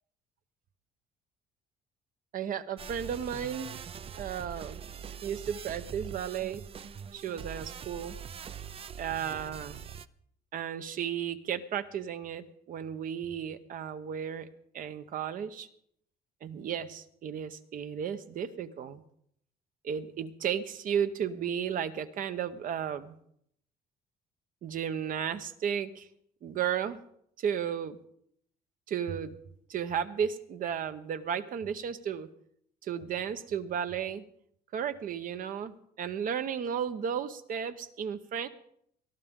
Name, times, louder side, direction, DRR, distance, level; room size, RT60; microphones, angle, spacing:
voice 1, 2.3-3.8 4.2-4.8 5.2-6.6 7.1-8.2 9.0-9.8 10.5-14.5 14.7-15.7 16.4-19.0 19.8-23.1 24.6-26.1 26.4-27.0 27.4-28.0 28.9-29.4 29.7-32.3 32.8-34.2 34.7-38.5, right 8 dB, 55° right, 11 dB, 0.9 m, -34 dB
sound 1, 2.8-10.0, right 8 dB, 35° right, 0.5 m, -43 dB
19.0 x 12.5 x 3.7 m, 0.69 s
cardioid pair, 110°, 17 cm